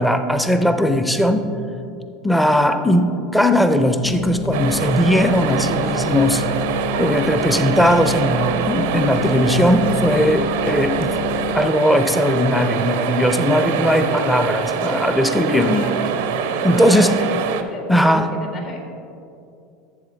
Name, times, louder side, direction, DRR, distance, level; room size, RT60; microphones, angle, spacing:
voice 1, 0.0-1.4 2.2-6.4 7.0-11.1 11.5-15.8 16.6-17.1 17.9-18.3, equal, 5° left, 8 dB, 0.6 m, -18 dB
sound 1, 4.0-11.7, left 8 dB, 75° left, 0.3 m, -30 dB
sound 2, 4.5-17.6, right 7 dB, 70° right, 0.6 m, -24 dB
voice 2, 15.5-16.1 16.5-17.4 17.7-18.9, left 3 dB, 50° left, 2 dB, 1.7 m, -34 dB
11.5 x 7.5 x 3.4 m, 2.6 s
hypercardioid pair, 80°, 0 cm